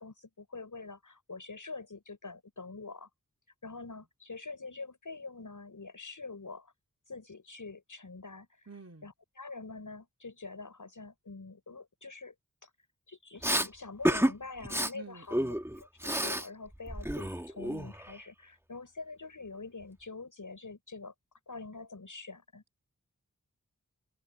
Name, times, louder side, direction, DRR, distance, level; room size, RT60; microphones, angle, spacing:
voice 1, 0.0-3.1 3.6-6.7 7.1-8.7 9.0-12.3 12.6-12.7 13.1-15.4 15.8-21.1 21.5-22.6, left 3 dB, 70° left, 7.5 m, -45 dB
voice 2, 8.7-9.1 14.9-15.6, right 4 dB, 50° right, 4.3 m, -49 dB
Respiratory sounds, 13.4-13.7 14.0-14.3 14.6-14.9 15.3-16.5 16.7-18.2, right 1 dB, 10° right, 1.8 m, -30 dB
wide cardioid pair, 65°, 32 cm